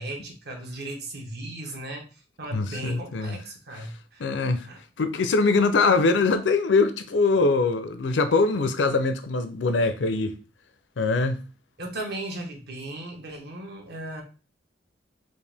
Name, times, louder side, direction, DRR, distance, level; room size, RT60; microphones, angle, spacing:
voice 1, 0.0-2.1 2.4-4.3 4.6-4.8 11.8-14.2, right 1 dB, 65° right, 1.0 m, -36 dB
voice 2, 2.5-3.4 4.2-4.7 5.0-10.4 11.0-11.4, left 3 dB, 85° left, 0.5 m, -22 dB
4.6 x 2.5 x 3.4 m
head